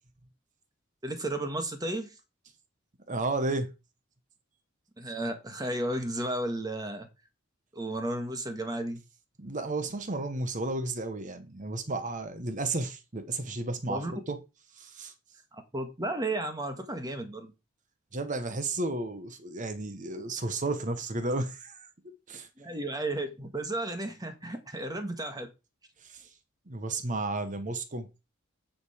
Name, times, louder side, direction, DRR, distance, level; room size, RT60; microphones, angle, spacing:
voice 1, 1.0-2.2 5.0-7.1 7.7-9.0 13.9-14.1 15.5-17.5 22.6-25.5, right 1 dB, 20° right, 1.6 m, -33 dB
voice 2, 3.1-3.7 9.4-14.4 14.8-15.1 18.1-21.9 22.3-22.5 26.0-26.3 26.7-28.1, right 2 dB, 35° right, 1.0 m, -33 dB
9.8 x 5.2 x 5.0 m
head